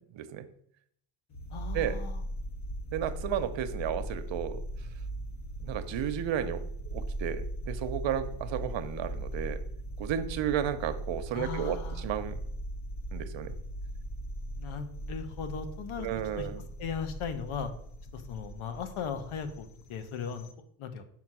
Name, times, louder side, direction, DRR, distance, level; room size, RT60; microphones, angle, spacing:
voice 1, 0.1-0.5 1.7-2.0 2.9-4.6 5.6-6.6 6.9-9.6 10.0-12.4 13.1-13.5 16.0-16.6, right 9 dB, 65° right, 10 dB, 0.9 m, -33 dB
sound 1, 1.3-20.5, right 1 dB, 35° left, 1.0 m, -39 dB
voice 2, 1.5-2.2 11.3-12.0 14.6-16.1 16.4-16.5 16.8-17.7 18.1-20.5 20.8-21.0, left 6 dB, 85° left, 9 dB, 1.1 m, -37 dB
6.0 x 4.0 x 6.1 m, 0.68 s
cardioid pair, 100°, 48 cm